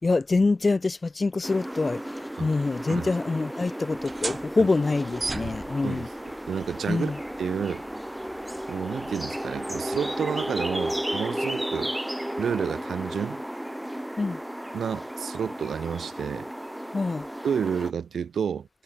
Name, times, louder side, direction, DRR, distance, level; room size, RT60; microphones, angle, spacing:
voice 1, 0.0-6.1 6.9-7.2 14.2-14.4 16.9-17.3, left 3 dB, 35° left, 4.0 m, -25 dB
sound 1, 1.4-17.9, equal, 5° right, 1.4 m, -34 dB
sound 2, 3.9-11.2, right 3 dB, 35° right, 6.3 m, -40 dB
voice 2, 6.5-7.1 7.4-7.8 8.7-12.0 12.4-13.4 14.7-16.5 17.4-18.7, right 7 dB, 75° right, 1.6 m, -30 dB
cardioid pair, 80°, 0 cm